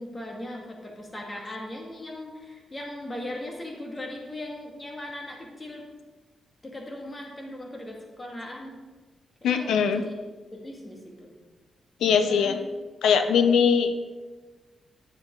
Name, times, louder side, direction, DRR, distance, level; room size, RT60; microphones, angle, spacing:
voice 1, 0.0-5.8 6.6-8.8 9.4-10.2 10.5-11.3 12.2-12.6, left 1 dB, 25° left, 0 dB, 2.1 m, -38 dB
voice 2, 9.4-10.0 12.0-12.6 13.0-13.9, left 6 dB, 90° left, 8 dB, 0.7 m, -21 dB
9.3 x 7.4 x 3.8 m, 1.3 s
cardioid pair, 80°, 0 cm